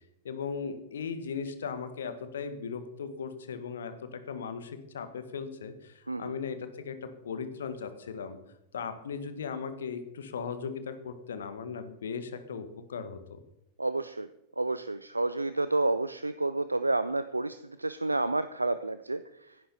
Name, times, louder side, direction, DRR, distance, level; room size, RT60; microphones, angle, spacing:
voice 1, 0.2-8.4 8.7-13.4, left 6 dB, 65° left, 10 dB, 1.7 m, -38 dB
voice 2, 6.1-6.4 13.8-14.3 14.6-19.2 19.5-19.6, right 2 dB, 85° right, 13 dB, 0.6 m, -30 dB
16.0 x 11.5 x 4.3 m, 0.83 s
figure-of-eight pair, 90°, 0 cm